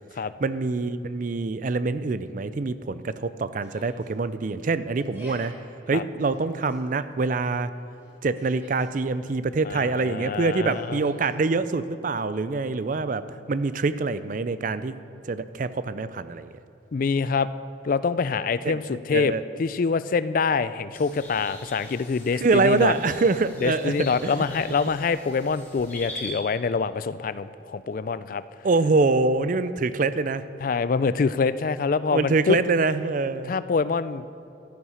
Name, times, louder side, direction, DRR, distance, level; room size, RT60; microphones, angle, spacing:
voice 1, 0.4-5.5 5.9-7.7 8.2-13.2 13.5-14.9 15.2-16.5 18.6-18.8 19.1-19.4 22.3-23.9 24.2-24.3 28.6-30.4 32.1-33.5, right 3 dB, 45° right, 14 dB, 0.4 m, -25 dB
Yell, 3.6-4.1 4.9-5.5 6.3-6.8 8.0-8.9 10.7-11.3, equal, 10° right, 3.3 m, -49 dB
voice 2, 9.6-11.0 16.9-17.5 17.8-19.3 19.6-22.9 23.6-28.4 30.6-32.6 33.5-34.3, left 5 dB, 45° left, 15 dB, 0.3 m, -25 dB
sound 1, 20.9-26.3, left 1 dB, 10° left, 1.8 m, -42 dB
13.0 x 9.6 x 5.6 m, 2.8 s
head